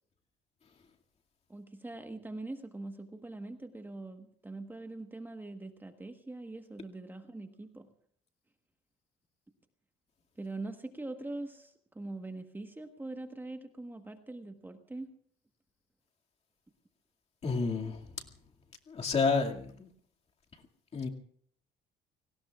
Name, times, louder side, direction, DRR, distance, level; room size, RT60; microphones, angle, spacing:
voice 1, 1.5-7.9 10.4-15.1, right 2 dB, 10° right, 1.3 m, -43 dB
voice 2, 17.4-18.0 18.9-19.9 20.9-21.1, left 4 dB, 40° left, 2.3 m, -30 dB
30.0 x 18.5 x 2.4 m
cardioid pair, 110°, 17 cm